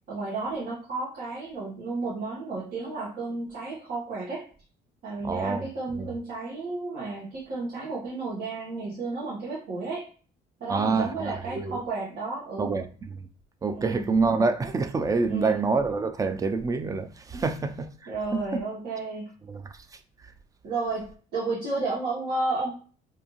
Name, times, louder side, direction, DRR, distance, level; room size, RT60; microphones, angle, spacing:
voice 1, 0.1-4.5 5.0-10.1 10.6-12.8 13.7-14.0 15.3-15.6 17.3-17.4 18.1-19.3 20.6-22.7, right 3 dB, 70° right, 1.1 m, -32 dB
voice 2, 5.2-5.7 5.9-6.1 10.7-11.8 12.6-13.2 13.6-18.6 19.5-19.6, right 4 dB, 20° right, 0.3 m, -27 dB
2.6 x 2.3 x 2.9 m
cardioid pair, 110°, 17 cm